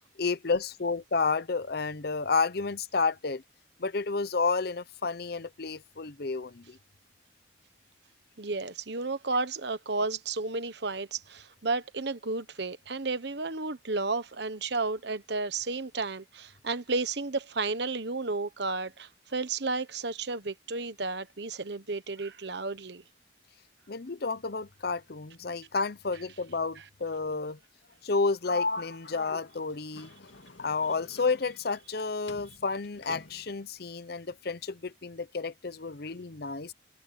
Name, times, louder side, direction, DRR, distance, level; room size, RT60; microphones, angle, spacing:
voice 1, 0.2-3.4 3.8-6.8 23.9-27.6 28.0-30.1 30.6-36.7, left 4 dB, 55° left, 0.7 m, -31 dB
voice 2, 8.4-23.0, right 3 dB, 60° right, 1.2 m, -32 dB
Sliding door, 28.4-32.0 32.3-33.6, left 3 dB, 75° left, 2.2 m, -39 dB
head